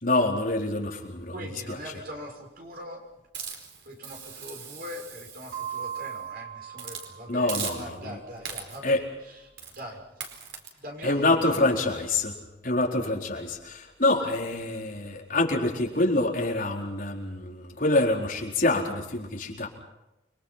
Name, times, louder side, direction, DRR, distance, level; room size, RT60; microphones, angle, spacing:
voice 1, 0.0-1.3 1.7-1.8 7.3-8.2 8.8-9.0 11.0-12.4 12.6-19.7, left 2 dB, 50° left, -1 dB, 4.4 m, -26 dB
voice 2, 1.3-3.0 3.8-9.5 9.7-10.0 10.7-11.7 14.2-14.3, equal, 55° right, 2 dB, 6.4 m, -42 dB
Hiss, 3.3-6.2 6.7-7.1 7.5-8.1 8.4-8.9 9.6-9.8 10.2-10.7, right 7 dB, 70° right, 4.6 m, -39 dB
sound 1, 5.5-8.0, right 9 dB, 90° right, 4.6 m, -38 dB
29.5 x 23.5 x 5.9 m, 0.95 s
head